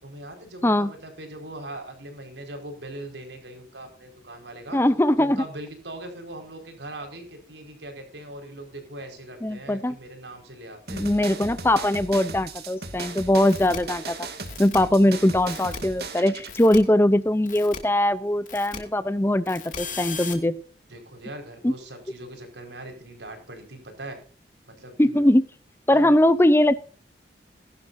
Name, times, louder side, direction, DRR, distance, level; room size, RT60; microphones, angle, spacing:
voice 1, 0.0-4.8 5.2-11.1 20.9-24.2 24.7-25.2 25.9-26.1, right 1 dB, 80° right, 4 dB, 4.9 m, -40 dB
voice 2, 4.7-5.4 9.4-10.0 10.9-14.2 14.6-20.6 21.6-21.7 25.0-25.4 25.9-26.8, left 1 dB, 15° left, 15 dB, 0.5 m, -21 dB
sound 1, 10.9-16.5, right 3 dB, 60° right, 2.4 m, -37 dB
sound 2, 13.5-13.8 14.5-14.8 15.5-15.8 16.5-16.8 17.5-17.8 18.5-18.8 19.5-20.3, left 6 dB, 45° left, 2.5 m, -36 dB
20.0 x 12.0 x 2.6 m, 0.41 s
head